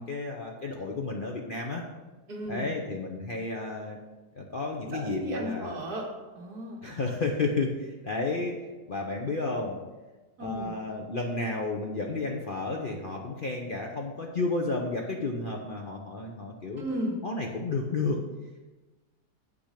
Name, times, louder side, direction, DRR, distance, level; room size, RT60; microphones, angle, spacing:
voice 1, 0.0-1.8 2.5-4.0 4.3-5.8 6.8-9.8 10.4-16.8 17.2-18.2, left 3 dB, 45° left, 0 dB, 0.7 m, -32 dB
voice 2, 2.3-2.7 4.9-6.8 10.4-10.7 16.8-17.2, equal, 70° right, -2 dB, 2.3 m, -34 dB
8.7 x 6.0 x 5.1 m, 1.2 s
omnidirectional pair, 1.8 m